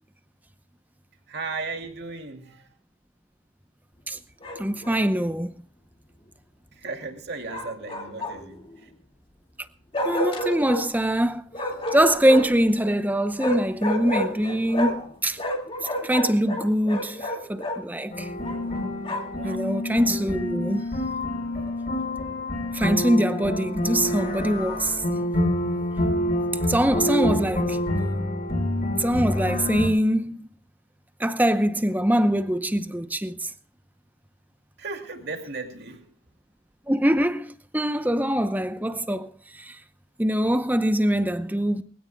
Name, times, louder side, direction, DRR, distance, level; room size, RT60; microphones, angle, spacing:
voice 1, 1.3-2.8 6.7-8.9 19.3-19.7 27.1-27.5 34.8-36.1, right 3 dB, 55° right, 2.6 m, -36 dB
Bark, 4.4-5.0 7.5-8.6 9.9-10.8 11.5-12.6 13.4-15.1 15.4-17.8 18.4-19.4, left 1 dB, 25° left, 2.1 m, -30 dB
voice 2, 4.6-5.5 10.0-11.4 11.9-15.4 16.0-18.3 19.4-20.9 22.7-25.0 26.7-27.8 29.0-30.4 31.2-33.3 36.9-39.3 39.7-39.8 40.2-41.8, right 1 dB, 10° right, 0.7 m, -23 dB
sound 1, 18.1-29.9, left 1 dB, 45° left, 5.0 m, -27 dB
23.0 x 16.5 x 2.3 m
head